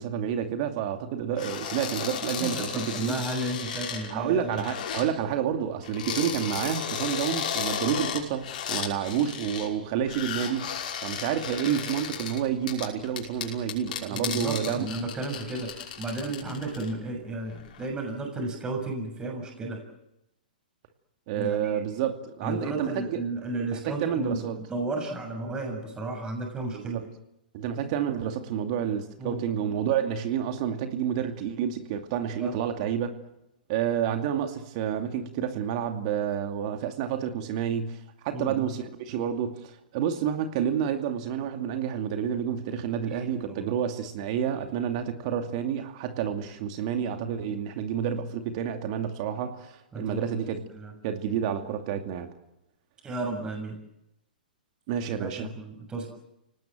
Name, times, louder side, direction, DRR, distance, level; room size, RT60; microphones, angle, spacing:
voice 1, 0.0-3.2 4.1-10.7 11.0-14.9 21.3-23.2 23.7-24.6 26.7-27.0 27.5-33.1 33.7-38.0 38.2-50.6 51.0-52.3 54.9-55.5, right 9 dB, 45° right, 6 dB, 2.5 m, -29 dB
sound 1, 1.4-5.1 5.8-9.7 10.0-16.9 17.3-17.9, left 8 dB, 60° left, 5.8 m, -34 dB
voice 2, 2.4-4.7 14.1-19.8 21.4-21.8 22.4-27.0 29.2-29.4 32.4-32.6 38.3-38.7 43.1-43.6 49.9-50.3 50.7-50.9 53.0-53.8 55.2-56.1, right 2 dB, 15° right, 2 dB, 6.9 m, -33 dB
30.0 x 19.0 x 7.7 m, 0.87 s
hypercardioid pair, 120°, 5 cm